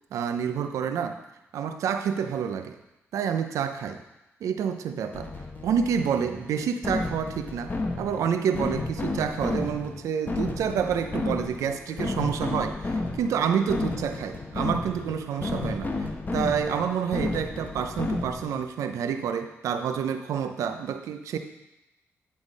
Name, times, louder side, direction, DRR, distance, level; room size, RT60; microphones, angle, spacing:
voice 1, 0.1-1.2 1.5-2.8 3.1-4.0 4.4-5.3 5.6-21.4, right 7 dB, 85° right, 8 dB, 0.6 m, -28 dB
sound 1, 5.1-18.6, left 2 dB, 35° left, 1.1 m, -32 dB
10.0 x 3.5 x 5.2 m, 0.96 s
cardioid pair, 65°, 5 cm